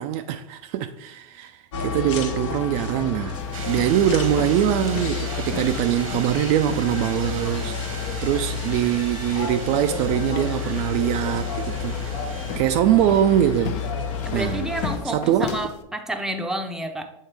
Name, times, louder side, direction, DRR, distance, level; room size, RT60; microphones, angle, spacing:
voice 1, 0.0-13.8 14.3-14.7 15.1-15.5, right 11 dB, 45° right, 0.4 m, -23 dB
sound 1, 1.7-15.0, left 6 dB, 65° left, 1.0 m, -30 dB
sound 2, 3.3-15.8, left 7 dB, 45° left, 0.6 m, -38 dB
sound 3, 3.5-12.6, right 5 dB, 85° right, 1.1 m, -39 dB
voice 2, 14.2-17.1, right 1 dB, 5° right, 0.6 m, -29 dB
7.4 x 3.9 x 3.4 m
hypercardioid pair, 105°, 17 cm